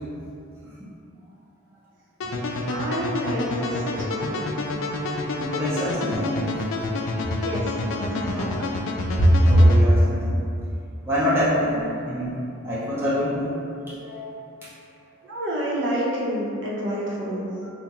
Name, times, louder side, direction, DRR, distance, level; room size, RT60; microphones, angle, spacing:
sound 1, 2.2-9.8, left 2 dB, 75° left, 0.4 m, -28 dB
voice 1, 2.7-4.4 7.4-8.6 11.6-11.9 15.2-17.5, equal, 60° right, -6 dB, 0.7 m, -29 dB
voice 2, 5.4-6.4 7.1-7.3 8.1-8.5 9.1-10.4 11.0-12.4 12.6-14.4, equal, 10° right, -10 dB, 0.6 m, -21 dB
4.5 x 2.1 x 2.9 m, 2.6 s
head